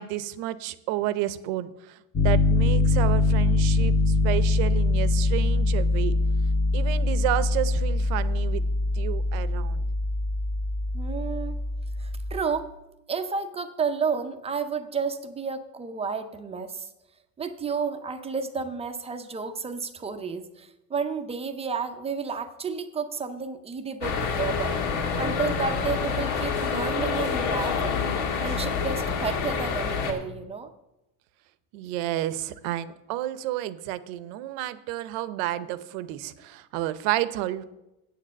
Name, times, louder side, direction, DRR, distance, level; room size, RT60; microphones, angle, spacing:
voice 1, 0.0-6.1 6.7-8.6 8.9-9.9 31.7-37.6, right 14 dB, 70° right, 15 dB, 0.8 m, -31 dB
Piano, 2.1-12.4, left 2 dB, 20° left, 0.8 m, -23 dB
voice 2, 10.9-11.6 12.0-12.7 13.1-16.9 17.4-24.8 25.2-28.0 28.4-30.7, right 5 dB, 15° right, 8 dB, 0.5 m, -31 dB
sound 1, 24.0-30.1, left 5 dB, 65° left, 2.0 m, -27 dB
8.3 x 6.8 x 7.4 m, 0.94 s
cardioid pair, 145°, 44 cm